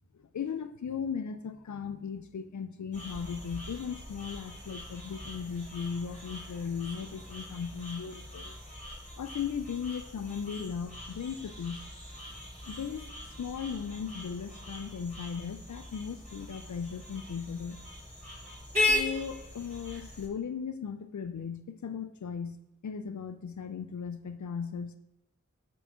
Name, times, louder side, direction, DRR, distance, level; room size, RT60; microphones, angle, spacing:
voice 1, 0.3-8.5 9.2-11.8 12.7-17.8 18.9-22.6 22.8-25.0, left 6 dB, 75° left, 10 dB, 0.5 m, -37 dB
sound 1, 2.9-20.3, left 2 dB, 25° right, 3.1 m, -39 dB
6.9 x 6.0 x 6.2 m, 0.83 s
wide cardioid pair, 55°, 30 cm